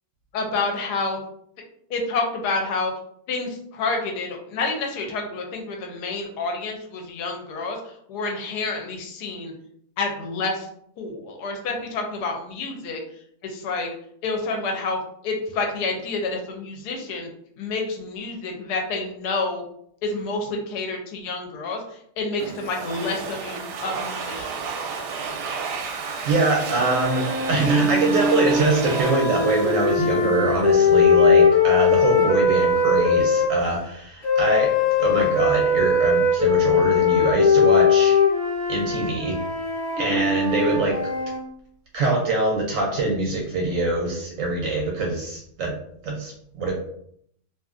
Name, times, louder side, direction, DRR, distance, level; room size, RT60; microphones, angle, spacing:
voice 1, 0.3-1.2 1.9-2.9 3.3-9.5 10.0-10.7 11.0-13.0 13.4-13.9 14.2-17.3 17.6-19.6 20.0-24.5, left 3 dB, 80° left, 2 dB, 1.2 m, -28 dB
Domestic sounds home sounds, 22.4-30.8, right 5 dB, 85° right, 1.2 m, -32 dB
voice 2, 26.2-38.2 38.7-39.3 40.0-41.0 41.9-45.7 46.0-46.7, right 2 dB, 65° right, -1 dB, 0.8 m, -23 dB
sound 1, 26.6-33.5 34.2-41.4, left 4 dB, 35° left, 0.7 m, -20 dB
2.8 x 2.5 x 2.4 m, 0.68 s
omnidirectional pair, 1.7 m